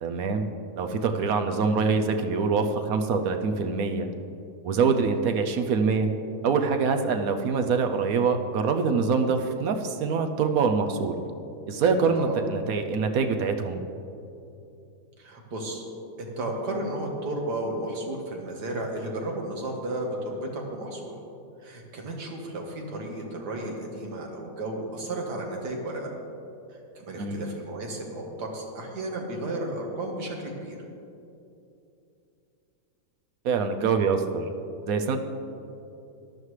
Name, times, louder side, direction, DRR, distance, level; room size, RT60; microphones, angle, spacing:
voice 1, 0.0-4.1 4.6-6.1 6.4-11.2 11.7-13.9 27.2-27.4 33.4-34.5 34.9-35.2, right 5 dB, 65° right, 6 dB, 1.1 m, -25 dB
voice 2, 15.2-15.8 16.2-21.2 21.6-26.1 27.0-30.8, right 1 dB, 85° right, 0 dB, 2.1 m, -33 dB
14.0 x 11.0 x 3.2 m, 2.7 s
omnidirectional pair, 1.7 m